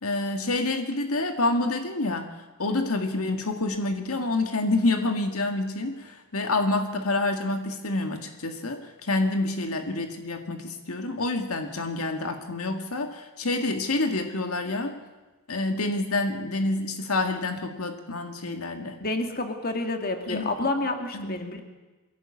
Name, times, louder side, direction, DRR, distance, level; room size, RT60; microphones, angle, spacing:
voice 1, 0.0-2.3 2.6-14.9 15.5-19.0 20.3-20.5 21.1-21.5, left 2 dB, 80° left, 5 dB, 2.0 m, -28 dB
voice 2, 19.0-21.6, left 2 dB, 45° left, 5 dB, 2.4 m, -29 dB
22.5 x 17.0 x 8.5 m, 1.2 s
head